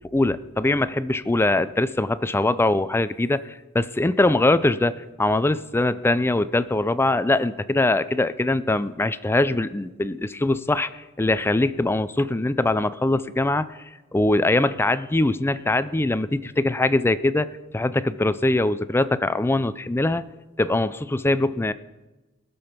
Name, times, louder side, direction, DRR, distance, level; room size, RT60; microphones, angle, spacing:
voice 1, 0.1-3.4 3.7-13.7 14.1-17.5 17.7-20.2 20.6-21.7, left 2 dB, 10° left, 15 dB, 0.4 m, -22 dB
20.5 x 6.9 x 5.8 m, 1.1 s
head